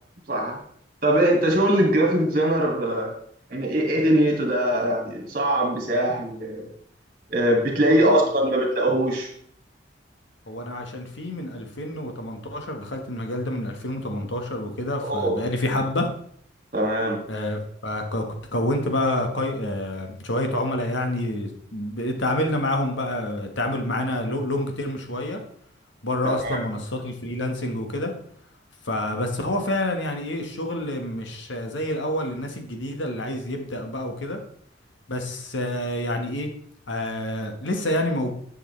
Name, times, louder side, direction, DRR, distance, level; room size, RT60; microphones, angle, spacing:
voice 1, 0.3-0.6 1.0-3.1 3.5-6.7 7.3-9.3 15.0-15.4 16.7-17.3 26.2-26.6, right 1 dB, 45° right, -1 dB, 2.4 m, -22 dB
voice 2, 7.8-8.2 10.5-16.1 17.3-25.4 26.0-28.1 28.8-34.4 35.1-36.5 36.9-38.3, left 1 dB, 75° left, 3 dB, 1.4 m, -28 dB
10.5 x 6.6 x 3.2 m, 0.64 s
head